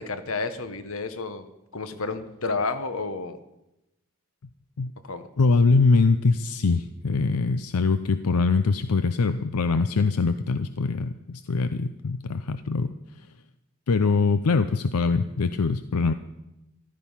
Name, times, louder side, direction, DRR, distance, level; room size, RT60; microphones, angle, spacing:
voice 1, 0.0-1.5 1.7-3.4 5.1-5.3, left 3 dB, 70° left, 11 dB, 1.1 m, -30 dB
voice 2, 5.4-12.9 13.9-16.1, left 4 dB, 90° left, 11 dB, 0.6 m, -23 dB
14.5 x 12.0 x 5.6 m, 0.91 s
head